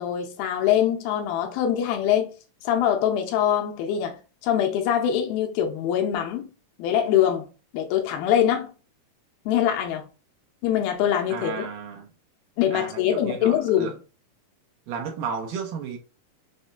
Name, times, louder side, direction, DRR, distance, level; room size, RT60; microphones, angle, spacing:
voice 1, 0.0-2.3 2.6-6.5 6.8-7.5 7.7-8.7 9.5-10.1 10.6-11.7 12.6-14.0, left 10 dB, 80° left, 2.5 m, -23 dB
voice 2, 11.3-12.1 12.7-14.0 14.9-16.0, right 6 dB, 75° right, 2.2 m, -33 dB
6.2 x 2.7 x 2.2 m
omnidirectional pair, 4.4 m